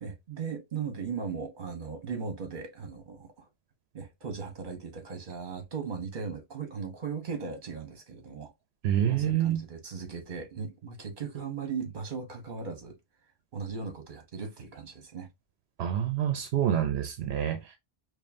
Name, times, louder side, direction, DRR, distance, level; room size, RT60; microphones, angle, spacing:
voice 1, 0.0-3.5 3.9-8.5 9.0-13.0 13.5-15.3, right 5 dB, 50° right, 1.2 m, -37 dB
voice 2, 8.8-9.6 15.8-17.8, right 10 dB, 80° right, 0.8 m, -27 dB
5.2 x 2.3 x 2.6 m
omnidirectional pair, 1.1 m